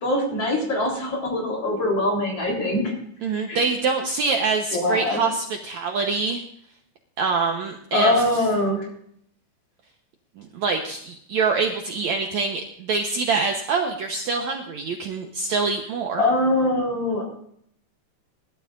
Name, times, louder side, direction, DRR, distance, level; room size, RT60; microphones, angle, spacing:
voice 1, 0.0-2.9 3.5-3.6 4.7-5.2 7.9-8.9 16.2-17.2, left 1 dB, 35° left, 0 dB, 4.4 m, -23 dB
voice 2, 3.2-6.4 7.2-8.4 10.4-16.2, right 4 dB, 85° right, 3 dB, 1.6 m, -25 dB
21.5 x 12.0 x 2.6 m, 0.68 s
omnidirectional pair, 4.8 m